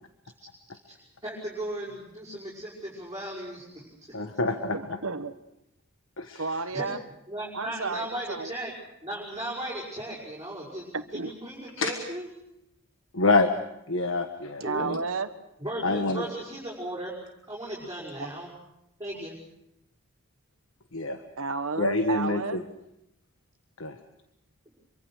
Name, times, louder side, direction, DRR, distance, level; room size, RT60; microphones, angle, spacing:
voice 1, 0.9-3.9 6.7-6.9 7.3-8.7 9.0-10.9 11.1-12.3 14.6-14.9 15.6-17.1 17.5-18.5 19.0-19.3, right 1 dB, 15° right, -6 dB, 5.8 m, -36 dB
voice 2, 4.1-4.8 6.2-6.4 11.8-11.9 13.1-13.5 13.9-15.0 15.8-16.2 20.9-21.2 21.8-22.6 23.8-23.9, left 3 dB, 60° left, 7 dB, 1.4 m, -26 dB
voice 3, 4.7-5.4 6.3-7.0 7.5-8.5 10.9-11.3 14.6-15.3 18.2-18.3 21.4-22.6, right 4 dB, 70° right, 11 dB, 1.3 m, -32 dB
26.0 x 24.0 x 6.4 m, 0.82 s
head